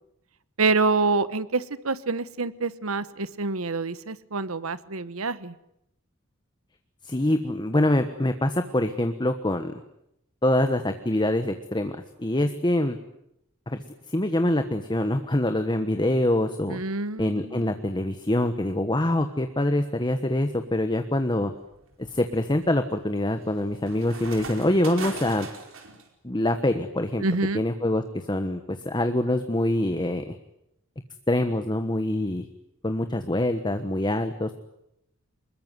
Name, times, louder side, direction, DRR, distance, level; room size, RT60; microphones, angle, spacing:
voice 1, 0.6-5.5 16.7-17.6 27.2-27.6, right 3 dB, 90° right, 15 dB, 1.2 m, -26 dB
voice 2, 7.0-9.7 10.4-13.0 13.7-13.8 14.1-16.8 17.2-21.5 22.1-25.5 26.2-27.2 27.5-30.3 31.3-32.5 32.8-34.5, left 1 dB, 20° left, 8 dB, 1.3 m, -25 dB
sound 1, 20.5-20.8 21.4-26.0, right 4 dB, 70° right, 4.9 m, -41 dB
25.0 x 21.5 x 9.6 m, 0.81 s
head